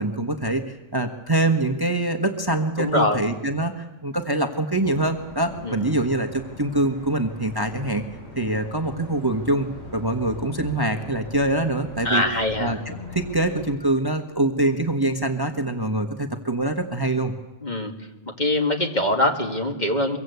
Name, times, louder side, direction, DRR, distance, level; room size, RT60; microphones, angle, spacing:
voice 1, 0.0-8.0 8.4-9.7 9.9-12.2 12.6-17.3, right 2 dB, 20° right, 5 dB, 1.3 m, -24 dB
voice 2, 2.8-3.2 5.6-5.9 12.0-12.8 17.6-17.9 18.4-20.2, left 1 dB, 35° left, 3 dB, 2.3 m, -23 dB
sound 1, 4.9-13.7, left 1 dB, 55° left, 7.6 m, -41 dB
24.0 x 23.5 x 8.1 m, 1.0 s
omnidirectional pair, 1.3 m